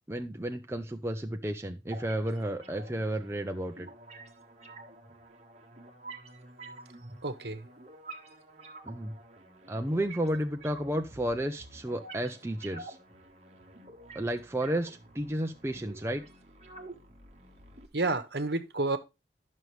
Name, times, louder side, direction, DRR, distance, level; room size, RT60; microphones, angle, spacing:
voice 1, 0.0-3.9 8.9-9.1 9.7-13.0 14.1-16.2, right 1 dB, 15° right, 0.6 m, -32 dB
sound 1, 1.9-17.9, right 2 dB, 35° right, 1.3 m, -49 dB
voice 2, 7.2-7.7 17.9-19.0, right 2 dB, 65° right, 1.1 m, -30 dB
11.0 x 6.4 x 3.2 m
head